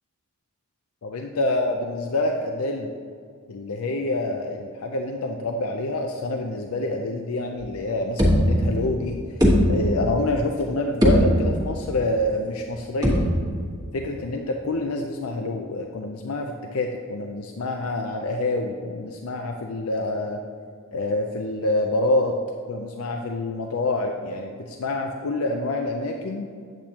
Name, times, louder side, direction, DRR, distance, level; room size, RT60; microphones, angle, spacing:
voice 1, 1.0-2.9 3.5-9.2 9.7-13.3 13.9-20.4 20.9-22.3 22.7-26.5, left 2 dB, 85° left, 3 dB, 0.6 m, -27 dB
sound 1, 7.6-7.7 8.2-9.0 9.4-10.2 10.6-10.7 11.0-11.8 13.0-13.7, equal, 15° right, 1.4 m, -20 dB
8.7 x 8.3 x 2.9 m, 2.2 s
head